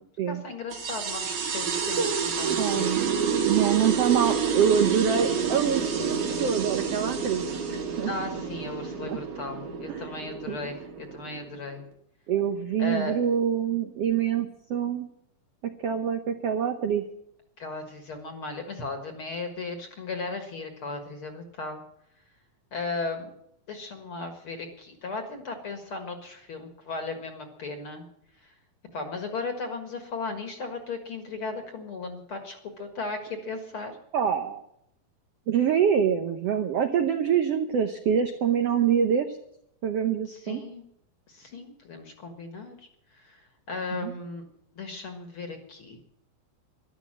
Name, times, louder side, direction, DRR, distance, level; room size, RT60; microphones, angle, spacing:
voice 1, 0.3-2.9 8.0-11.8 12.8-13.2 17.6-21.8 22.7-23.3 23.7-28.0 28.4-28.5 28.9-34.0 40.3-40.9 41.3-42.8 43.1-44.5 44.8-46.0, left 3 dB, 45° left, 6 dB, 1.9 m, -36 dB
sound 1, 0.7-11.7, right 6 dB, 50° right, 2.9 m, -29 dB
voice 2, 2.5-7.4 7.7-8.1 9.1-9.2 9.9-10.0 10.5-10.6 12.3-15.1 15.8-17.0 34.1-34.6 35.5-39.4 39.8-40.6 43.9-44.1, right 8 dB, 80° right, 6 dB, 1.4 m, -25 dB
13.5 x 12.0 x 7.5 m, 0.74 s
omnidirectional pair, 4.1 m